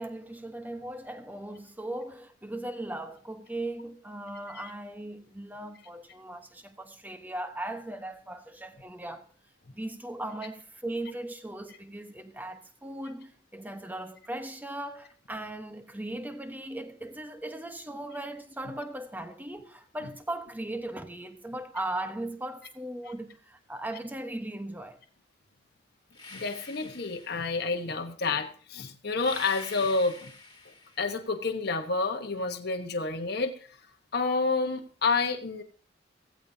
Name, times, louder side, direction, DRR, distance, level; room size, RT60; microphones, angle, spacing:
voice 1, 0.0-9.3 9.7-25.0, right 1 dB, 10° right, 1.0 m, -38 dB
sound 1, 26.1-27.8 29.2-31.2, left 3 dB, 20° left, 2.1 m, -46 dB
voice 2, 26.3-30.3 31.0-33.5 34.1-35.6, left 3 dB, 60° left, 1.2 m, -29 dB
15.5 x 15.5 x 2.8 m
head